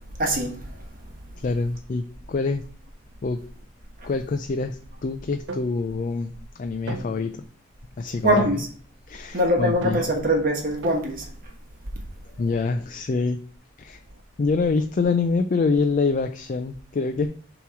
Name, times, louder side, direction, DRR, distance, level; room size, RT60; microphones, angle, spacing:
voice 1, 0.2-0.8 4.0-4.1 8.2-8.7 9.3-11.3, equal, 45° right, 1.2 m, -23 dB
voice 2, 1.4-2.6 3.2-3.4 4.0-7.4 8.0-8.5 9.1-10.0 12.4-13.4 13.8-14.0 14.4-17.3, left 4 dB, 40° left, 0.4 m, -25 dB
sound 1, 5.5-5.8 6.9-7.5 8.4-8.9 9.8-10.3 10.8-11.2, right 2 dB, 70° right, 0.6 m, -35 dB
7.0 x 3.0 x 4.7 m
head